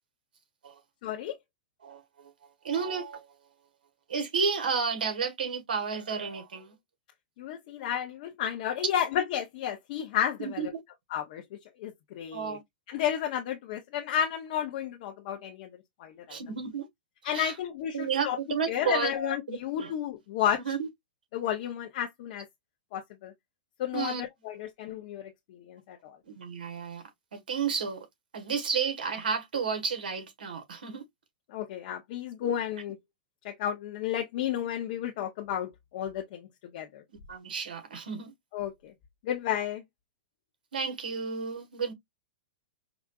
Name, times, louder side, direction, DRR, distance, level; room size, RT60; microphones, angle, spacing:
voice 1, 1.0-1.3 7.4-10.7 11.1-12.6 12.9-15.7 16.0-16.4 17.2-18.4 18.7-20.7 21.3-22.5 22.9-23.3 23.8-26.2 31.5-33.0 33.4-36.5 36.7-37.0 38.5-38.9 39.2-39.8, left 10 dB, 55° left, 0.7 m, -32 dB
voice 2, 1.8-2.3 2.6-3.2 4.1-6.7 10.4-10.7 12.3-12.6 16.3-16.9 17.3-17.5 17.9-19.1 19.8-19.9 20.7-20.9 23.9-24.2 26.3-27.0 27.3-28.0 28.3-31.0 37.3-38.3 40.7-41.9, right 6 dB, 85° right, 1.4 m, -31 dB
4.8 x 2.4 x 2.3 m
hypercardioid pair, 130°, 5 cm